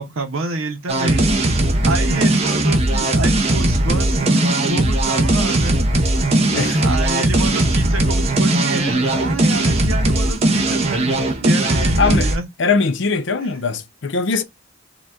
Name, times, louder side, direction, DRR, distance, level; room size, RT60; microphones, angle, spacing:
voice 1, 0.0-1.5 1.8-5.8 6.8-12.5 13.4-13.5, right 2 dB, 85° right, 0.8 m, -28 dB
sound 1, 0.9-12.4, right 1 dB, 30° right, 0.7 m, -18 dB
voice 2, 6.5-6.8 12.0-12.3 12.6-14.4, left 4 dB, 60° left, 0.6 m, -20 dB
5.0 x 2.3 x 3.5 m
head